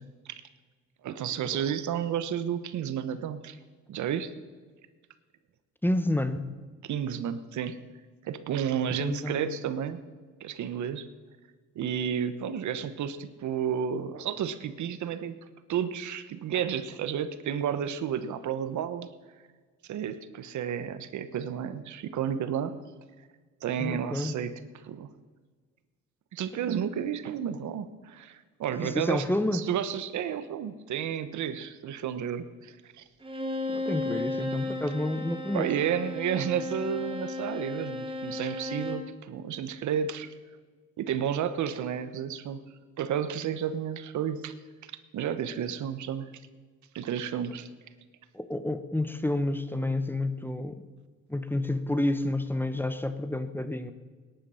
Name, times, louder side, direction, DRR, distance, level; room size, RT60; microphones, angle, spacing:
voice 1, 1.0-3.6 3.9-4.3 6.8-7.8 8.2-10.0 10.4-11.1 11.7-15.4 15.7-19.1 19.9-22.8 23.6-24.5 24.8-25.1 26.3-29.2 29.5-33.0 35.5-40.3 41.0-42.6 43.0-44.5 45.1-46.3 46.9-47.7, right 8 dB, 70° right, 12 dB, 1.0 m, -31 dB
voice 2, 5.8-6.5 9.0-9.4 23.8-24.4 28.8-29.6 33.7-35.7 48.3-50.8 51.3-53.9, left 1 dB, 5° left, 10 dB, 0.9 m, -29 dB
Bowed string instrument, 33.2-39.1, left 2 dB, 15° right, 1.8 m, -34 dB
18.5 x 10.5 x 5.6 m, 1.5 s
cardioid pair, 90°, 30 cm